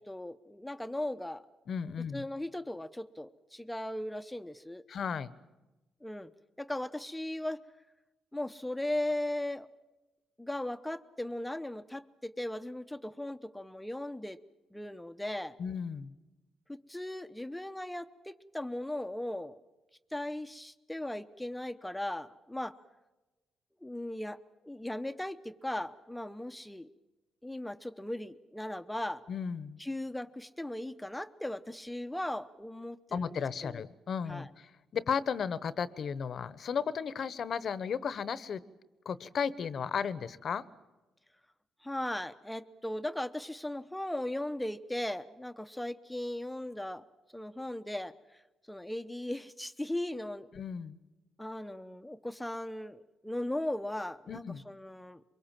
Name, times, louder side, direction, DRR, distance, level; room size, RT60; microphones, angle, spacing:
voice 1, 0.0-1.5 2.1-4.8 6.0-6.3 6.6-7.6 8.3-9.7 10.4-14.4 14.7-15.6 16.7-19.6 20.1-22.8 23.8-24.4 24.6-26.9 27.4-29.2 29.8-33.8 34.3-34.5 41.8-47.0 47.3-48.1 48.7-50.5 51.4-55.2, left 1 dB, 5° left, 10 dB, 0.8 m, -37 dB
voice 2, 1.7-2.2 4.9-5.3 15.6-16.1 29.3-29.8 33.1-38.6 39.0-40.6 50.5-51.0 54.3-54.6, left 6 dB, 55° left, 16 dB, 0.9 m, -34 dB
23.5 x 22.5 x 7.4 m, 1.1 s
cardioid pair, 90°, 0 cm